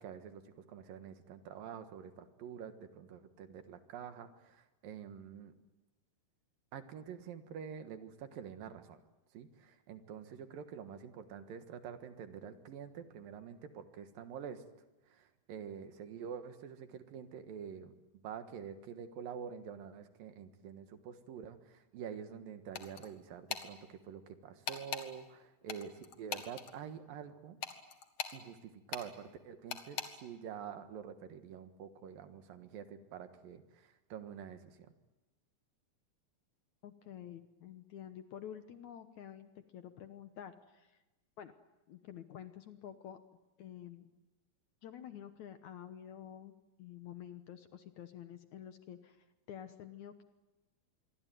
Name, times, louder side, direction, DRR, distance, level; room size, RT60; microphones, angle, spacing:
voice 1, 0.0-5.5 6.7-9.0 9.3-14.6 15.0-27.6 28.3-34.9, right 7 dB, 70° right, 9 dB, 3.2 m, -47 dB
sound 1, 22.8-23.1 23.5-23.7 24.7-25.1 25.7-26.7 27.6-28.4 28.9-29.1 29.7-30.1, left 7 dB, 50° left, 2.4 m, -40 dB
voice 2, 36.8-41.0 41.4-41.5 41.9-43.2 43.6-44.1 44.8-46.5 46.8-50.2, left 10 dB, 65° left, 9 dB, 2.0 m, -49 dB
26.0 x 23.5 x 9.2 m, 1.1 s
omnidirectional pair, 4.2 m